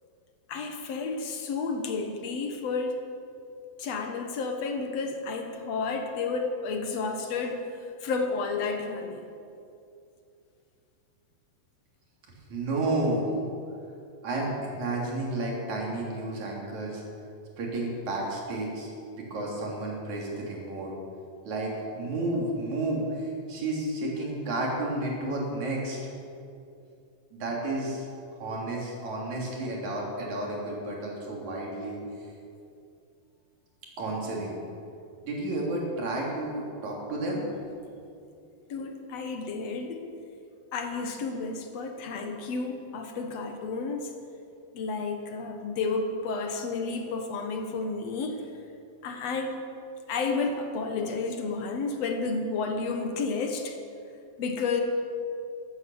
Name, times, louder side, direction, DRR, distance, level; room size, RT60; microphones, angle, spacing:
voice 1, 0.5-3.0 3.8-7.6 8.0-9.3 38.7-40.0 40.7-44.1 44.7-48.4 49.0-49.7 50.1-53.8 54.4-54.8, left 4 dB, 60° left, 4 dB, 1.8 m, -31 dB
voice 2, 12.5-13.3 14.2-17.0 17.6-20.9 21.5-26.1 27.3-28.1 28.4-32.0 34.0-34.6 35.2-37.4, right 2 dB, 50° right, -3 dB, 4.3 m, -31 dB
15.0 x 12.5 x 7.1 m, 2.5 s
omnidirectional pair, 4.3 m